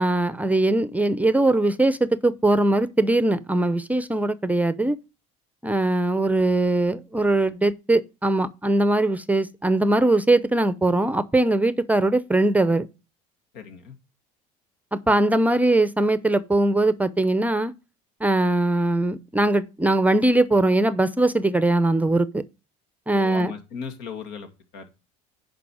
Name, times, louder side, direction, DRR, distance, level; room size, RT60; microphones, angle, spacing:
voice 1, 0.0-5.0 5.6-12.9 14.9-17.7 18.2-22.4 23.1-23.5, right 2 dB, 10° right, 0.7 m, -21 dB
voice 2, 13.5-13.9 23.1-24.9, left 6 dB, 75° left, 2.5 m, -37 dB
10.0 x 5.3 x 4.9 m
supercardioid pair, 100°, 18 cm